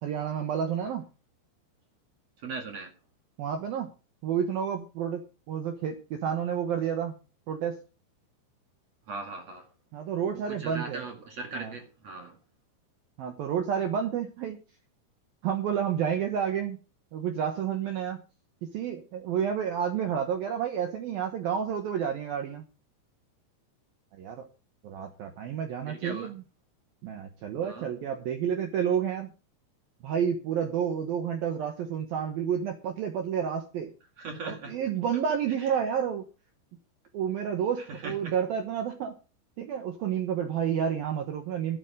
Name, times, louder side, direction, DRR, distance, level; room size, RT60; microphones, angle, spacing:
voice 1, 0.0-1.0 3.4-3.9 4.2-7.2 7.5-7.8 9.9-11.0 11.5-11.7 13.2-14.6 15.4-16.8 17.1-18.2 18.7-22.6 24.1-24.5 24.8-26.4 27.0-29.3 30.0-33.9 34.4-36.2 37.1-39.1 39.6-41.8, right 8 dB, 70° right, 6 dB, 2.3 m, -30 dB
voice 2, 2.4-2.9 9.1-9.7 10.3-12.3 25.9-26.3 27.6-27.9 34.2-34.7 37.9-38.3, right 3 dB, 50° right, 4 dB, 2.2 m, -39 dB
12.5 x 9.9 x 5.1 m, 0.33 s
omnidirectional pair, 5.8 m